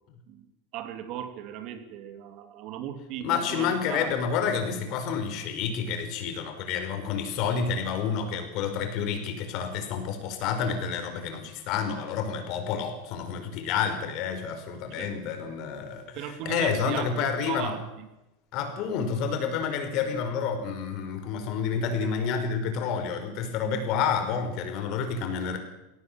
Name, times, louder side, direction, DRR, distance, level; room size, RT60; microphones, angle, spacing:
voice 1, 0.7-4.1 15.0-15.1 16.1-17.8, right 10 dB, 50° right, 8 dB, 2.9 m, -37 dB
voice 2, 3.2-17.7 18.5-25.6, left 6 dB, 50° left, 7 dB, 5.1 m, -29 dB
22.0 x 18.0 x 7.7 m, 0.96 s
supercardioid pair, 125°, 0 cm